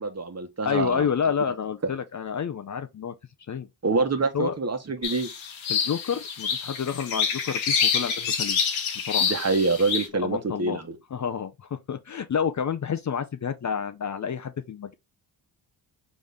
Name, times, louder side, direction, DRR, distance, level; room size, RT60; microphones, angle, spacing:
voice 1, 0.0-1.0 3.8-5.3 9.2-11.0, right 3 dB, 35° right, 1.2 m, -26 dB
voice 2, 0.6-3.1 3.5-3.7 4.3-4.5 5.7-8.6 9.1-9.3 10.2-10.8 11.1-14.9, left 7 dB, 40° left, 0.6 m, -29 dB
sound 1, 5.0-10.1, left 7 dB, 85° left, 1.2 m, -27 dB
4.0 x 3.5 x 3.5 m
supercardioid pair, 50°, 46 cm